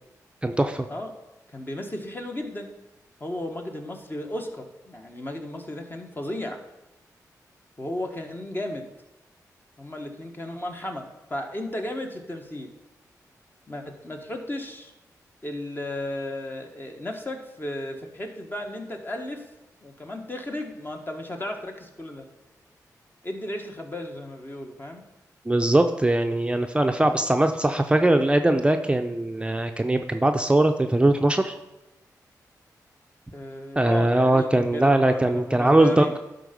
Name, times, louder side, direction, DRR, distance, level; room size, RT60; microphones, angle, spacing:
voice 1, 0.4-0.9 25.5-31.5 33.8-36.2, right 1 dB, 15° right, 6 dB, 0.6 m, -21 dB
voice 2, 1.5-2.7 3.2-6.6 7.8-8.8 9.8-12.7 13.7-14.9 15.4-19.4 19.8-22.2 23.2-25.0 33.3-36.1, left 1 dB, 30° left, 3 dB, 1.4 m, -34 dB
11.5 x 4.0 x 5.3 m, 0.98 s
cardioid pair, 55°, 7 cm